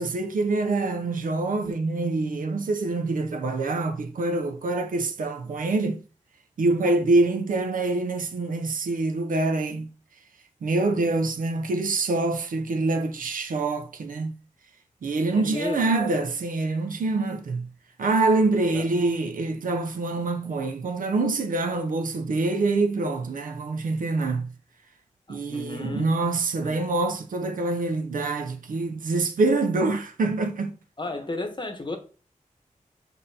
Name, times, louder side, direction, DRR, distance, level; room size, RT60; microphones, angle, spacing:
voice 1, 0.0-6.0 6.6-9.9 10.6-14.3 15.0-17.7 18.0-24.5 25.3-30.7, right 3 dB, 80° right, 0.5 m, -25 dB
voice 2, 15.4-16.1 18.7-18.9 25.3-26.1 26.6-26.7 31.0-32.0, left 2 dB, 35° left, 0.9 m, -33 dB
5.3 x 2.6 x 2.7 m
cardioid pair, 50°, 14 cm